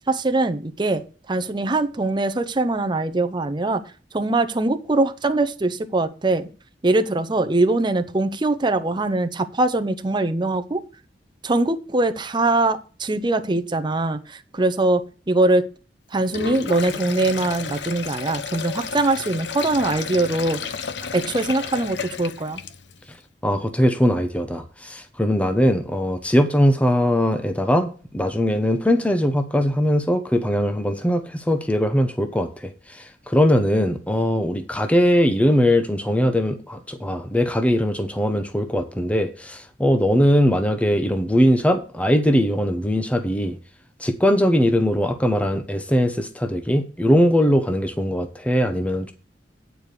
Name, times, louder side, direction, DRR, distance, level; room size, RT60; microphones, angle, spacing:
voice 1, 0.1-3.8 4.1-6.5 6.8-10.8 11.4-15.6 16.1-20.7 21.1-22.6, right 2 dB, 25° right, 8 dB, 0.7 m, -22 dB
Sink (filling or washing), 16.2-23.0, left 6 dB, 75° left, 0.8 m, -32 dB
voice 2, 23.4-43.6 44.0-49.1, equal, 10° left, 7 dB, 0.8 m, -20 dB
9.2 x 4.8 x 6.7 m, 0.37 s
head